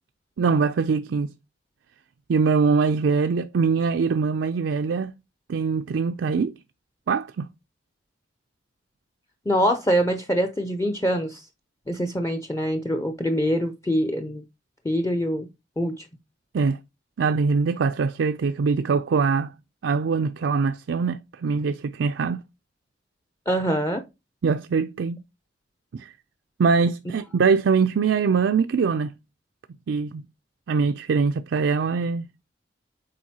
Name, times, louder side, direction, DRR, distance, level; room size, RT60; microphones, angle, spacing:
voice 1, 0.4-1.3 2.3-5.1 5.5-6.5 7.1-7.5 16.5-16.8 17.2-19.5 19.8-22.4 24.4-25.2 25.9-26.1 26.6-29.1 29.9-30.2 30.7-32.3, right 5 dB, 90° right, 0.4 m, -23 dB
voice 2, 9.5-11.5 11.9-14.4 14.8-15.5 15.8-16.1 23.5-24.0, equal, 15° left, 0.5 m, -24 dB
7.5 x 4.5 x 2.8 m
head